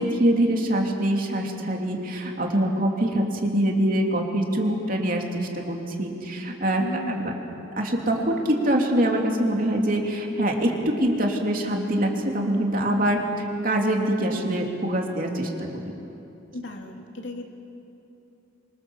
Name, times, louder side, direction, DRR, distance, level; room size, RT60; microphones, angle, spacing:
voice 1, 0.0-6.8 7.1-7.3 7.8-13.2 13.6-15.8, right 1 dB, 45° right, 1 dB, 3.0 m, -24 dB
voice 2, 6.8-7.4 16.5-17.4, left 1 dB, 75° left, 2 dB, 2.8 m, -35 dB
27.0 x 25.0 x 7.2 m, 2.8 s
head